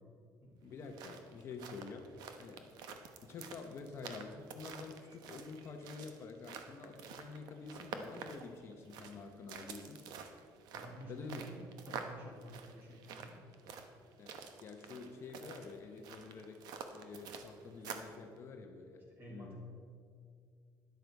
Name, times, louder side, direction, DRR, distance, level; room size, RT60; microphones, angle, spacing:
voice 1, 0.6-2.0 2.4-2.7 3.2-10.0 11.1-11.4 14.2-16.6 16.9-19.0 19.3-19.6, left 4 dB, 35° left, 4 dB, 0.9 m, -48 dB
sound 1, 0.7-18.2, right 6 dB, 65° right, 1.0 m, -49 dB
voice 2, 10.7-13.3 19.2-19.6, right 1 dB, 30° right, -3 dB, 3.4 m, -50 dB
13.0 x 10.5 x 4.7 m, 2.2 s
cardioid pair, 175°, 7 cm